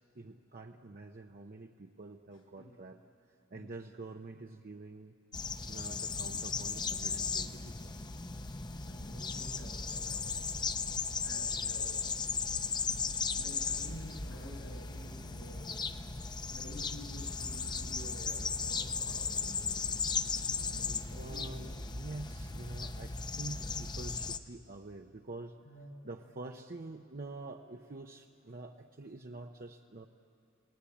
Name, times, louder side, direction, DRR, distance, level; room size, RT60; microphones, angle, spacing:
voice 1, 0.1-3.0 3.5-5.1 5.7-7.9 21.1-25.6 26.0-30.1, right 2 dB, 45° right, 3 dB, 0.8 m, -46 dB
sound 1, 5.3-24.4, left 5 dB, 20° left, 0.7 m, -36 dB
voice 2, 8.9-10.7 11.2-12.1 13.3-16.0 16.5-19.9 20.6-21.5 25.6-26.1, equal, 80° left, 2 dB, 7.7 m, -50 dB
28.5 x 19.0 x 8.6 m, 2.4 s
head